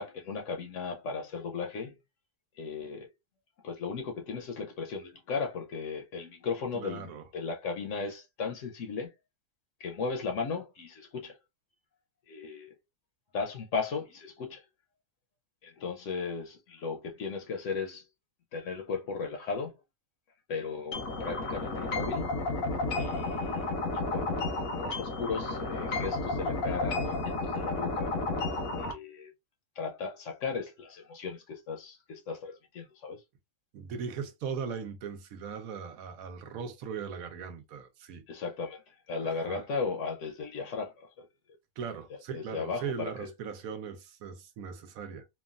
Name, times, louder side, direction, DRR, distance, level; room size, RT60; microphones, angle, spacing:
voice 1, 0.0-2.0 2.6-3.1 3.6-9.1 9.8-11.4 12.3-12.8 13.3-14.6 15.6-18.0 18.5-19.7 20.5-22.2 23.0-23.7 24.1-28.2 28.8-29.3 29.8-33.2 38.3-41.3 42.1-43.3, left 5 dB, 70° left, 0.9 m, -36 dB
voice 2, 6.7-7.2 33.7-38.3 39.3-39.6 41.8-45.3, right 6 dB, 90° right, 1.1 m, -39 dB
sound 1, 20.9-28.9, left 2 dB, 85° left, 1.2 m, -32 dB
3.1 x 2.3 x 2.4 m
omnidirectional pair, 1.4 m